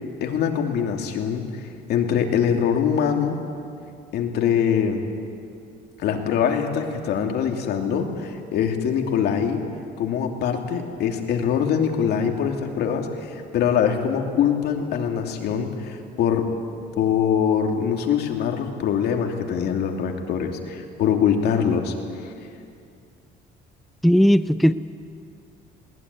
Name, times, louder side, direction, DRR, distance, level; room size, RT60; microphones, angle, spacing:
voice 1, 0.2-3.4 4.1-5.0 6.0-9.6 10.0-16.5 17.0-21.9 22.2-22.3, left 8 dB, 75° left, 3 dB, 2.8 m, -23 dB
voice 2, 24.0-24.7, equal, ahead, 13 dB, 0.5 m, -16 dB
20.0 x 20.0 x 9.7 m, 2.4 s
cardioid pair, 110°, 17 cm